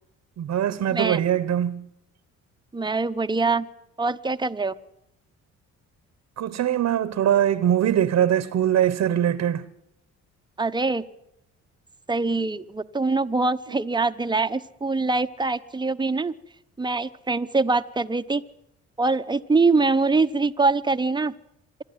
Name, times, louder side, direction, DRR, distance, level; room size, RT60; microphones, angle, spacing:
voice 1, 0.4-1.9 6.4-9.6, right 10 dB, 60° right, 1.0 m, -22 dB
voice 2, 2.7-3.7 4.0-4.7 10.6-11.0 12.1-16.3 16.8-18.4 19.0-21.3, right 3 dB, 15° right, 0.9 m, -23 dB
25.0 x 11.5 x 9.5 m
cardioid pair, 90°, 30 cm